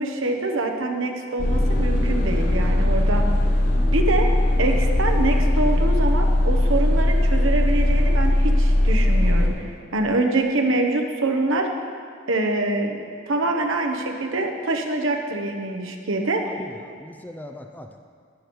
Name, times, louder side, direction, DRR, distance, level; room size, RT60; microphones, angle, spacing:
voice 1, 0.0-3.3 3.9-4.3 4.6-11.7 12.3-13.0 13.3-16.6, right 2 dB, 80° right, 3 dB, 1.0 m, -25 dB
sound 1, 1.4-9.5, left 1 dB, 40° left, 0.8 m, -19 dB
voice 2, 16.5-18.1, left 1 dB, 10° left, 4 dB, 0.4 m, -39 dB
11.5 x 10.5 x 3.1 m, 2.1 s
head